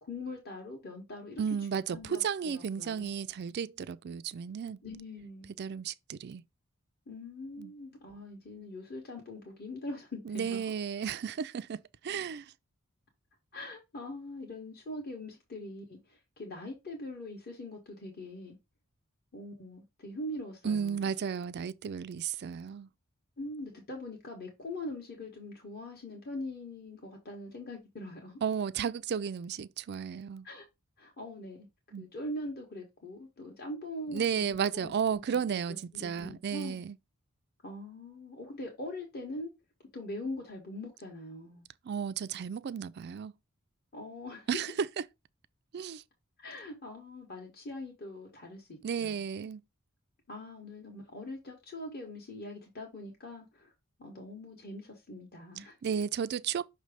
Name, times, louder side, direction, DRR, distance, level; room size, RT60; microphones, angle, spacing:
voice 1, 0.0-1.4 1.9-3.1 4.8-5.5 7.1-10.6 13.5-18.6 19.3-21.1 23.4-28.4 30.4-30.6 31.0-31.7 32.0-34.3 34.7-36.8 37.6-39.5 39.9-41.6 43.9-44.5 46.4-49.2 50.3-53.7 54.0-55.8, left 1 dB, 45° left, 1.5 m, -42 dB
voice 2, 1.4-4.8 5.6-6.4 7.6-7.7 10.3-12.5 20.6-22.9 28.4-30.5 31.9-32.1 34.1-37.0 41.8-43.3 44.5-44.9 45.7-46.0 48.8-49.6 55.8-56.6, right 7 dB, 50° right, 0.4 m, -33 dB
5.8 x 3.2 x 5.0 m
head